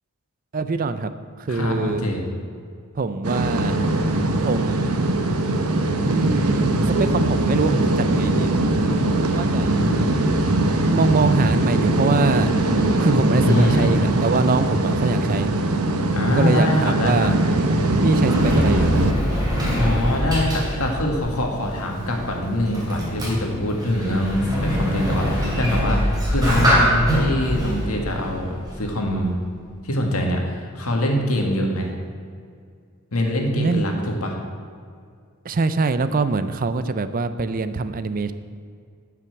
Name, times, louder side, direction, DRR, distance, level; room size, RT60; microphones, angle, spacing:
voice 1, 0.5-1.1 1.4-2.1 3.0-3.8 4.4-5.2 6.0-9.7 10.9-12.5 13.0-15.5 16.3-17.4 18.0-18.9 33.6-33.8 34.1-34.2 35.4-38.3, right 3 dB, 40° right, 12 dB, 0.5 m, -23 dB
voice 2, 1.5-2.2 13.4-14.0 16.1-17.3 19.8-29.4 29.8-31.9 33.1-34.4, left 1 dB, 70° left, 1 dB, 1.9 m, -23 dB
sound 1, 3.2-19.1, right 2 dB, 75° right, 1.0 m, -21 dB
Sliding door, 17.7-29.2, equal, 20° right, 3.1 m, -24 dB
10.5 x 5.9 x 8.0 m, 2.2 s
head